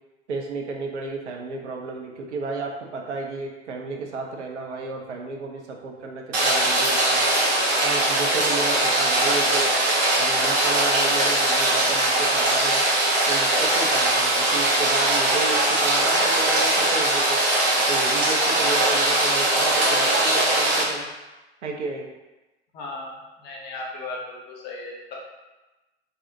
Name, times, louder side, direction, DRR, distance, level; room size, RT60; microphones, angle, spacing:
voice 1, 0.3-7.3 7.8-9.7 10.2-12.9 13.3-17.4 17.9-21.1 21.6-22.1, right 3 dB, 75° right, 1 dB, 0.5 m, -32 dB
Rain, 6.3-20.8, right 1 dB, 35° right, 0.6 m, -21 dB
voice 2, 22.7-25.1, left 2 dB, 30° left, -2 dB, 0.6 m, -36 dB
2.6 x 2.0 x 2.5 m, 1.1 s
figure-of-eight pair, 85°, 35 cm